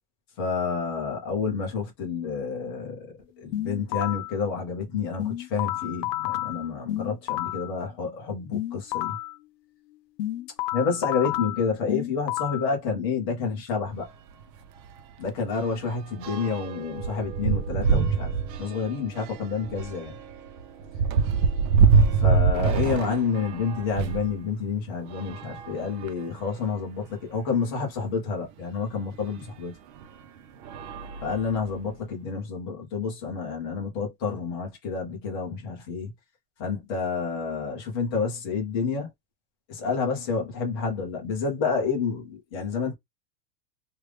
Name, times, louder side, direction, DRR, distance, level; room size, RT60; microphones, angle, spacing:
voice 1, 0.4-9.2 10.7-14.1 15.2-20.2 22.1-29.7 31.2-36.1 36.6-39.1 39.7-42.9, left 5 dB, 15° left, 0.4 m, -29 dB
sound 1, 3.5-4.4 5.2-7.7 8.5-9.4 10.2-12.7, left 15 dB, 85° left, 0.7 m, -30 dB
sound 2, 13.8-14.0 14.4-14.6 14.8-24.3 25.0-26.4 27.1-27.2 27.4-27.5 29.2-29.3 30.0-30.2 30.6-31.9, right 5 dB, 80° right, 0.8 m, -25 dB
3.2 x 2.4 x 3.2 m
supercardioid pair, 170°, 49 cm